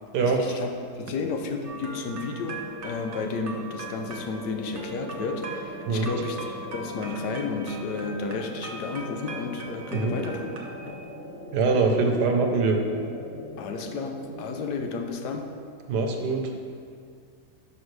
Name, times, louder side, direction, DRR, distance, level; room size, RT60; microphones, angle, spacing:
voice 1, 0.2-10.6 10.9-11.0 13.6-15.5, left 4 dB, 85° left, 5 dB, 1.3 m, -32 dB
sound 1, 1.6-15.5, right 2 dB, 50° right, 1.1 m, -41 dB
sound 2, 3.4-14.8, left 1 dB, 50° left, 1.3 m, -42 dB
voice 2, 11.5-12.8 15.9-16.5, right 4 dB, 80° right, 3 dB, 1.4 m, -23 dB
11.5 x 5.3 x 3.2 m, 2.2 s
omnidirectional pair, 1.8 m